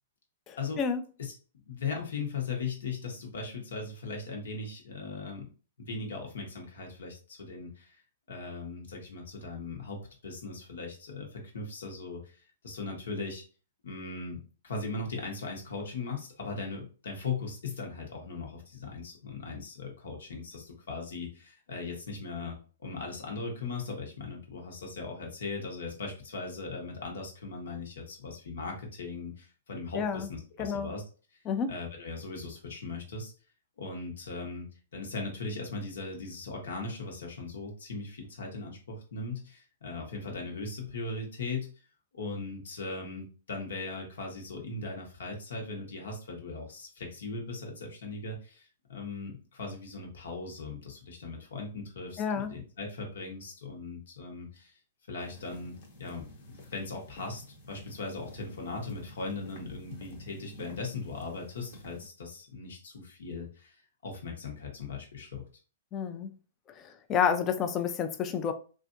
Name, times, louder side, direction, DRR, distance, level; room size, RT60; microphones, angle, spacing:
voice 1, 0.5-1.0 29.9-30.3 30.6-30.9 31.5-31.7 52.2-52.5 65.9-66.3 66.8-68.5, left 7 dB, 25° left, 0.4 m, -30 dB
voice 2, 1.7-5.5 5.8-8.0 8.3-12.3 12.6-13.4 13.8-22.6 22.8-31.0 31.7-33.3 33.8-34.7 34.9-41.7 42.1-54.7 55.1-55.7 56.0-57.4 57.7-63.8 64.0-65.4, left 3 dB, 80° left, 1.2 m, -39 dB
sound 1, 55.2-62.1, equal, 50° left, 0.9 m, -50 dB
3.3 x 2.5 x 2.6 m
hypercardioid pair, 150°, 0 cm